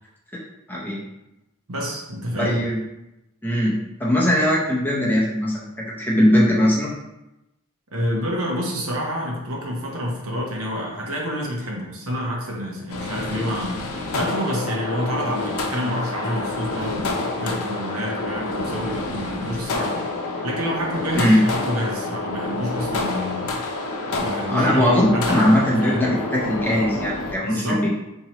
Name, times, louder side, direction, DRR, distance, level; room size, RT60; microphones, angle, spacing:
voice 1, 1.7-2.6 7.9-20.1 20.4-23.6 24.2-26.2 27.4-27.9, equal, 75° right, -2 dB, 0.9 m, -28 dB
voice 2, 2.3-2.8 3.4-6.9 21.2-21.4 24.5-25.0 25.3-27.9, equal, 10° left, -5 dB, 0.6 m, -20 dB
sound 1, 12.9-27.4, left 2 dB, 80° left, 0.6 m, -28 dB
4.3 x 2.9 x 2.9 m, 0.93 s
head